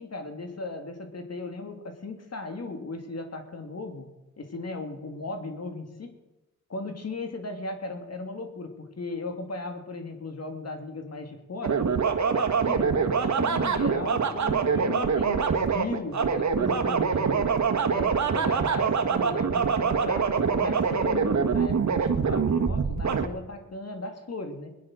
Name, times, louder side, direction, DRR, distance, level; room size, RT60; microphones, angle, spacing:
voice 1, 0.0-4.1 4.4-6.1 6.7-17.5 17.9-20.3 20.6-24.7, left 3 dB, 55° left, 5 dB, 2.7 m, -37 dB
sound 1, 11.6-23.3, right 6 dB, 65° right, 1.7 m, -25 dB
21.5 x 10.5 x 6.3 m, 0.99 s
cardioid pair, 70°, 31 cm